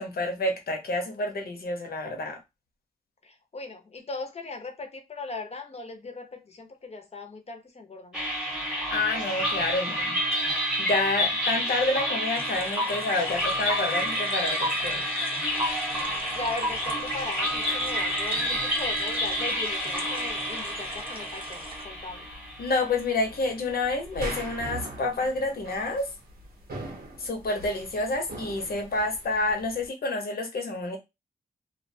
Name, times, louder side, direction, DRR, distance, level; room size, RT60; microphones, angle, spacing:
voice 1, 0.0-2.4 8.6-10.2 10.8-15.0 22.6-26.1 27.2-31.0, left 2 dB, 75° left, 0.8 m, -29 dB
voice 2, 3.2-8.2 15.9-22.3, left 3 dB, 40° left, 0.7 m, -38 dB
sound 1, 8.1-23.4, equal, 5° right, 0.9 m, -29 dB
sound 2, 12.3-21.8, equal, 35° right, 0.6 m, -38 dB
sound 3, 15.6-29.9, right 1 dB, 80° right, 0.9 m, -44 dB
2.5 x 2.2 x 2.6 m
wide cardioid pair, 100°, 16 cm